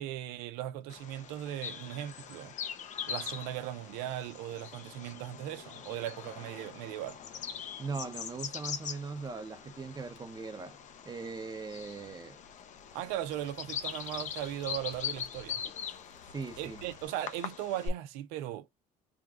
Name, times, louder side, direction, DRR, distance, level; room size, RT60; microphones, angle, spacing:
voice 1, 0.0-2.5 3.0-7.2 12.9-15.6 16.6-18.7, right 12 dB, 85° right, 0.7 m, -38 dB
Bird vocalization bird call bird song, 0.9-17.9, left 8 dB, 50° left, 0.8 m, -42 dB
sound 1, 7.1-17.1, left 4 dB, 65° left, 2.1 m, -59 dB
voice 2, 7.8-10.8 11.1-12.4 16.3-16.8, right 4 dB, 25° right, 0.9 m, -40 dB
3.6 x 2.3 x 3.7 m
supercardioid pair, 90°, 16 cm